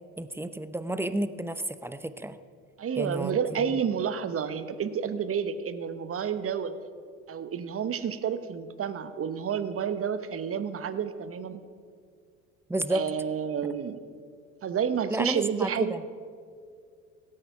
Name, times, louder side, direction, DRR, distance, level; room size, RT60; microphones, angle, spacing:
voice 1, 0.2-2.4 3.0-3.8 12.7-13.1 15.1-16.0, right 1 dB, 5° right, 12 dB, 0.6 m, -31 dB
voice 2, 2.8-6.7 7.3-11.6 12.9-14.0 14.6-15.9, right 7 dB, 35° right, 12 dB, 1.0 m, -30 dB
16.5 x 8.7 x 5.7 m, 2.2 s
hypercardioid pair, 60°, 40 cm